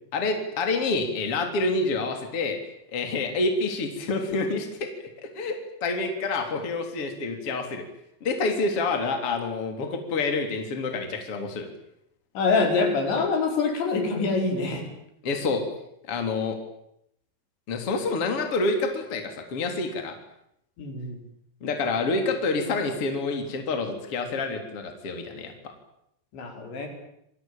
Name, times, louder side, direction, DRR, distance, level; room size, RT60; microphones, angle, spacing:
voice 1, 0.1-2.6 2.9-5.1 5.3-7.8 8.2-11.7 15.2-15.6 16.0-16.6 17.7-20.1 21.6-25.5, left 3 dB, 30° left, 5 dB, 4.0 m, -27 dB
voice 2, 12.4-14.8 20.8-21.2 26.3-26.9, left 4 dB, 70° left, 4 dB, 7.2 m, -25 dB
28.5 x 21.0 x 9.2 m, 0.76 s
omnidirectional pair, 5.4 m